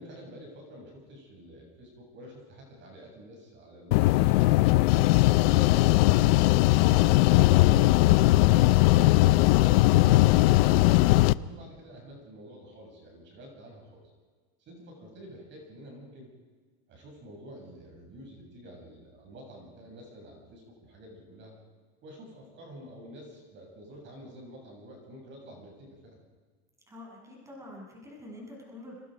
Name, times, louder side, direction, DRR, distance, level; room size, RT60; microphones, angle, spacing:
voice 1, 0.0-4.7 5.2-6.7 7.2-14.0 14.6-16.3 16.9-21.5 22.0-26.2, equal, 35° right, 0 dB, 7.7 m, -48 dB
sound 1, 3.9-11.3, left 18 dB, 70° left, 0.7 m, -20 dB
voice 2, 26.9-29.0, left 1 dB, 10° right, -3 dB, 7.9 m, -46 dB
29.0 x 26.0 x 5.3 m, 1.5 s
supercardioid pair, 150°, 32 cm